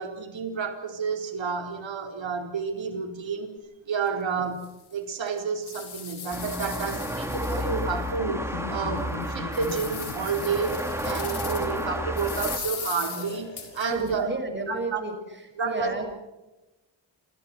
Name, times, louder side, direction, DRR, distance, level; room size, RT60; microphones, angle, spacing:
voice 1, 0.0-3.6 3.9-14.3 14.7-15.0 15.6-16.0, right 5 dB, 75° right, 4 dB, 4.4 m, -30 dB
sound 1, 4.0-4.1 4.6-4.7 5.3-8.1 8.5-8.6 9.1-11.8 12.2-14.1, left 6 dB, 55° left, 6.6 m, -38 dB
sound 2, 6.3-12.6, equal, 5° right, 3.4 m, -32 dB
Laughter, 8.2-14.1, left 5 dB, 85° left, 7.8 m, -39 dB
voice 2, 13.9-15.1 15.6-16.1, right 3 dB, 25° right, 4 dB, 6.0 m, -32 dB
28.5 x 28.0 x 4.5 m, 1.0 s
wide cardioid pair, 165°, 46 cm